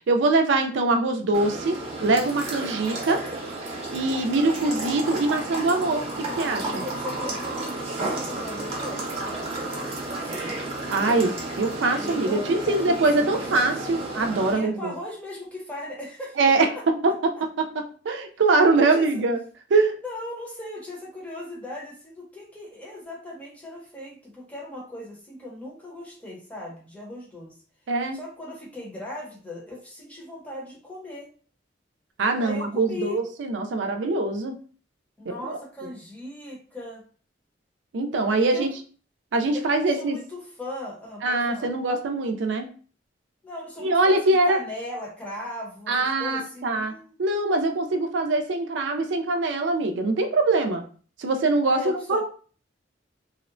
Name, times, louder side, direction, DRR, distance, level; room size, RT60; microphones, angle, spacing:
voice 1, 0.1-1.8 2.0-3.2 3.7-6.8 10.9-14.9 16.4-19.4 19.7-20.0 27.9-28.2 32.2-34.6 35.3-35.6 37.9-38.7 39.3-40.2 41.2-42.7 43.8-44.6 45.9-50.8 51.2-52.2, right 3 dB, 90° right, 5 dB, 0.4 m, -23 dB
sound 1, 1.3-14.5, right 2 dB, 35° right, 0.7 m, -32 dB
voice 2, 6.6-10.6 12.0-14.1 14.5-17.4 18.8-19.2 20.0-27.6 28.1-31.3 32.4-33.2 35.2-37.0 38.3-38.7 39.5-41.7 43.4-47.2 51.6-52.2, left 1 dB, 10° left, -4 dB, 0.7 m, -38 dB
2.7 x 2.1 x 2.5 m, 0.41 s
head